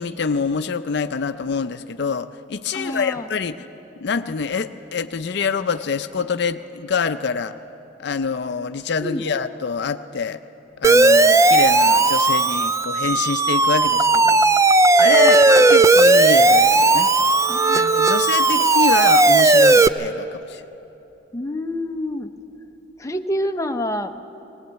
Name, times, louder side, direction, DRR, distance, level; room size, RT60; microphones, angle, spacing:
voice 1, 0.0-3.7 4.0-7.5 8.0-10.4 10.8-14.4 14.9-17.1 17.7-20.6, left 5 dB, 65° left, 10 dB, 0.5 m, -25 dB
voice 2, 2.7-3.3 9.0-9.2 15.0-15.4 17.5-17.8 18.5-18.7 21.3-22.3 23.0-24.2, left 1 dB, 15° left, 5 dB, 0.7 m, -27 dB
Siren, 10.8-19.9, right 3 dB, 15° right, 0.4 m, -15 dB
19.5 x 18.5 x 8.1 m, 2.9 s
head